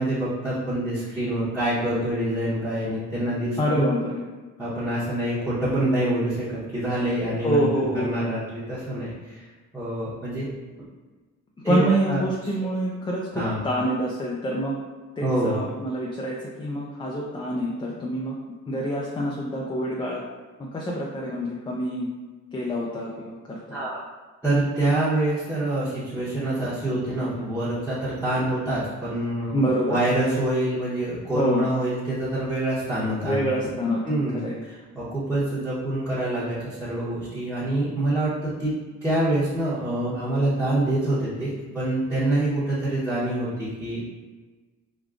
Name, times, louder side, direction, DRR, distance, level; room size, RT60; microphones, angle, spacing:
voice 1, 0.0-3.9 4.6-7.7 7.9-9.5 9.7-10.5 11.6-12.2 13.3-13.6 15.2-15.6 23.7-24.0 24.4-33.8 34.0-44.0, right 1 dB, 5° right, -12 dB, 0.9 m, -26 dB
voice 2, 3.6-4.2 7.4-8.2 11.6-14.8 15.2-18.4 18.7-20.2 20.6-22.1 22.5-23.8 29.5-30.0 31.3-31.7 33.2-34.6, equal, 15° left, -3 dB, 0.4 m, -26 dB
3.6 x 2.2 x 2.4 m, 1.3 s
cardioid pair, 90°, 30 cm